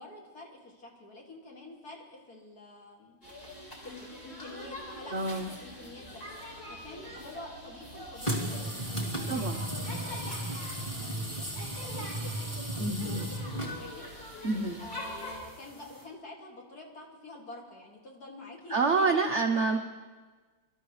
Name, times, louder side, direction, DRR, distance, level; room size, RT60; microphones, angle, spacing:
voice 1, 0.0-3.2 3.8-6.2 6.7-14.1 14.8-19.4, left 2 dB, 45° left, -1 dB, 2.7 m, -48 dB
sound 1, 3.2-15.4, left 1 dB, 30° left, 4.3 m, -44 dB
voice 2, 5.1-5.5 9.3-9.6 12.8-13.3 14.4-14.8 18.7-19.8, right 3 dB, 65° right, 4 dB, 0.7 m, -27 dB
sound 2, 8.2-16.0, right 1 dB, 15° left, 2.7 m, -36 dB
25.0 x 13.0 x 3.2 m, 1.3 s
omnidirectional pair, 2.3 m